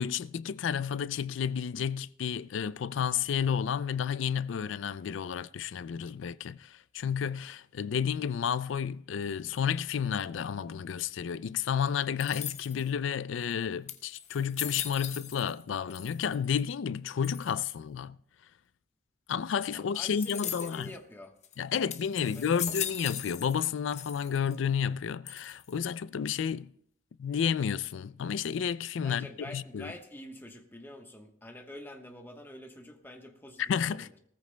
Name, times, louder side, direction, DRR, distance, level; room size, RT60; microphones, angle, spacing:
voice 1, 0.0-18.2 19.3-20.9 21.6-26.7 27.2-29.3 29.5-29.9 33.6-34.1, left 7 dB, 80° left, 0.4 m, -31 dB
sound 1, 12.2-12.9 13.5-13.6 13.9-15.6 15.9-16.5 17.2-17.7 20.2-20.9 21.4-21.5 21.9-23.7 23.9-24.5 25.3-25.8, left 9 dB, 40° left, 0.7 m, -38 dB
voice 2, 19.7-21.3 22.1-22.8 28.9-34.2, left 1 dB, 10° left, 1.1 m, -47 dB
19.0 x 14.0 x 2.2 m
head